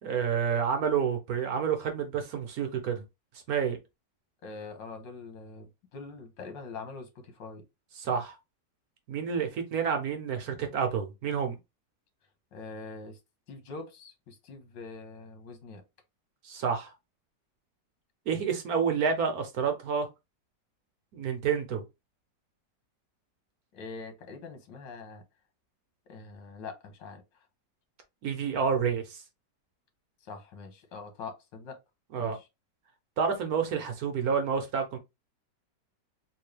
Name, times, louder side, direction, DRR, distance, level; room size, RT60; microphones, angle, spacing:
voice 1, 0.0-3.0 3.5-3.8 8.0-8.4 9.1-11.6 16.4-16.9 18.3-20.1 21.1-21.8 28.2-29.2 32.1-32.4 33.2-35.0, right 6 dB, 60° right, 1.2 m, -29 dB
voice 2, 4.4-7.6 12.5-13.2 13.5-15.8 23.7-25.2 26.1-27.2 30.2-31.8 32.2-32.5, left 4 dB, 85° left, 1.7 m, -43 dB
3.7 x 2.7 x 3.2 m
omnidirectional pair, 1.9 m